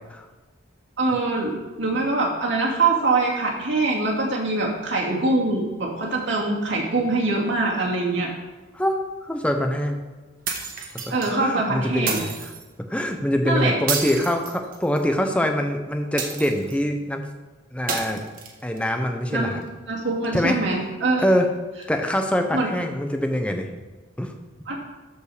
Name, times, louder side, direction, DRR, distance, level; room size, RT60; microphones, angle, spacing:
voice 1, 1.0-8.3 11.1-12.2 13.4-13.7 19.3-19.6 19.9-21.3 22.5-22.7 24.7-24.8, right 2 dB, 65° right, -2 dB, 2.6 m, -23 dB
voice 2, 8.7-10.0 11.1-11.2 11.4-12.5 12.9-17.3 17.7-18.2 18.6-19.6 20.3-20.6 21.2-21.5 21.9-23.7 24.2-24.3, equal, 5° left, 4 dB, 0.8 m, -24 dB
sound 1, 10.5-11.3 12.1-12.6 13.9-15.1 16.2-16.8 17.9-18.8, right 5 dB, 45° right, 1.4 m, -30 dB
13.5 x 5.4 x 5.0 m, 1.2 s
head